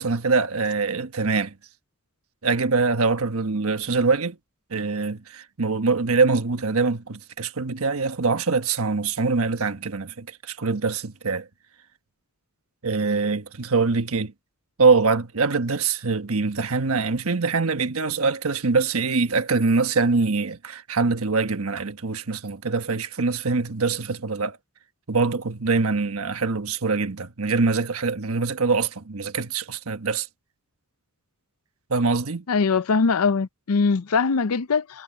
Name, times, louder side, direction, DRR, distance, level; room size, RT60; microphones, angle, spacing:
voice 1, 0.0-1.5 2.4-4.4 4.7-11.5 12.8-14.3 14.8-24.6 25.1-30.3 31.9-32.4, right 4 dB, 70° right, 1.3 m, -23 dB
voice 2, 32.5-35.0, left 5 dB, 75° left, 0.6 m, -22 dB
head